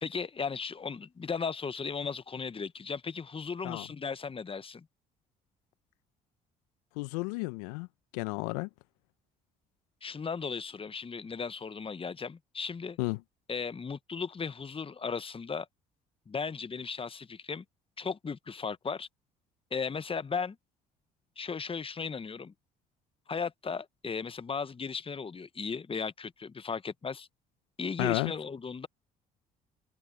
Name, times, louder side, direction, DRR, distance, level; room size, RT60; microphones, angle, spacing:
voice 1, 0.0-4.9 10.0-13.0 13.5-15.7 16.3-17.6 18.0-19.1 19.7-20.6 21.4-22.5 23.3-27.3 27.8-28.9, left 5 dB, 25° left, 1.2 m, -36 dB
voice 2, 7.0-7.9 8.1-8.7 13.0-13.2 28.0-28.3, left 26 dB, 75° left, 0.9 m, -32 dB
hypercardioid pair, 50°, 20 cm